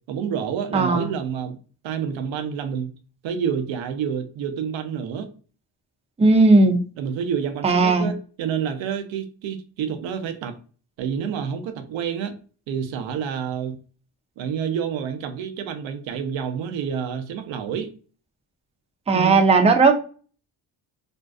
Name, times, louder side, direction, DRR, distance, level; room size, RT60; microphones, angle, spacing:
voice 1, 0.1-1.6 1.8-2.9 3.2-5.3 7.0-10.6 11.0-12.3 12.7-13.8 14.4-17.9 19.1-19.4, right 7 dB, 85° right, 0.6 m, -28 dB
voice 2, 0.7-1.1 6.2-6.8 7.6-8.1 19.1-19.9, right 3 dB, 15° right, 0.4 m, -16 dB
2.6 x 2.3 x 2.2 m
cardioid pair, 75°, 45 cm